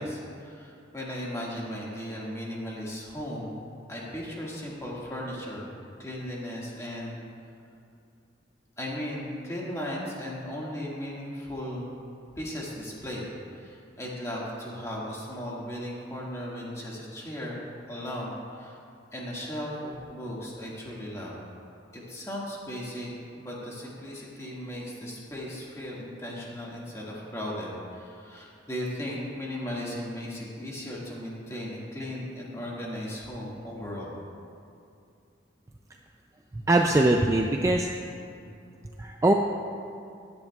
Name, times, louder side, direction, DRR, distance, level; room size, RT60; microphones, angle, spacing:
voice 1, 0.0-3.6 3.9-5.7 6.0-7.2 8.8-11.9 12.4-13.3 13.6-17.6 17.9-18.8 19.1-21.3 21.9-34.1, equal, 15° left, -5 dB, 1.8 m, -36 dB
voice 2, 36.5-37.9 39.0-39.3, right 1 dB, 15° right, 2 dB, 0.3 m, -22 dB
15.5 x 10.5 x 2.3 m, 2.5 s
head